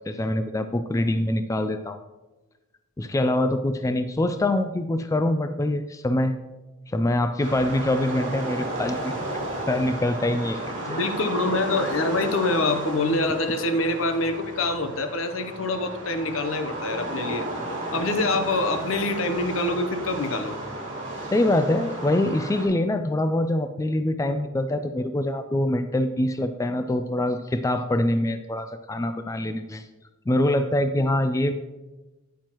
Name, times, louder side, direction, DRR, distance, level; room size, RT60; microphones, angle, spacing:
voice 1, 0.1-2.0 3.0-6.3 6.9-9.4 9.7-10.6 10.9-11.0 21.3-29.9 30.3-31.6, left 1 dB, 15° left, 9 dB, 0.3 m, -24 dB
sound 1, 7.4-22.7, right 1 dB, 35° right, 3.0 m, -33 dB
voice 2, 10.9-17.5 17.9-20.6, left 2 dB, 75° left, 8 dB, 0.8 m, -25 dB
9.4 x 8.9 x 3.0 m, 1.1 s
head